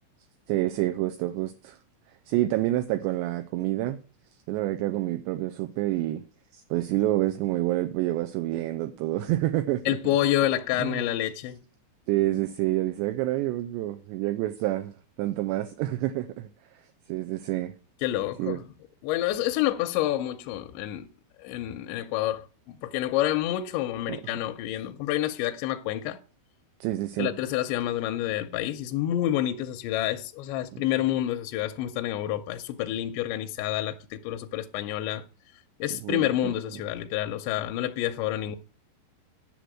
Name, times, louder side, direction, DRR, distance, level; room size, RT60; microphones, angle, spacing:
voice 1, 0.5-1.8 2.1-4.0 4.5-6.2 6.5-10.0 10.8-11.0 12.1-16.8 17.1-17.7 18.4-18.6 24.1-24.2 26.8-27.3 30.7-30.8 36.0-36.6, right 15 dB, 85° right, 2.5 m, -28 dB
voice 2, 9.9-11.6 18.0-18.7 19.0-21.1 21.4-26.2 27.2-35.2 35.8-38.6, left 13 dB, 80° left, 2.7 m, -28 dB
10.5 x 6.8 x 6.2 m
omnidirectional pair, 5.5 m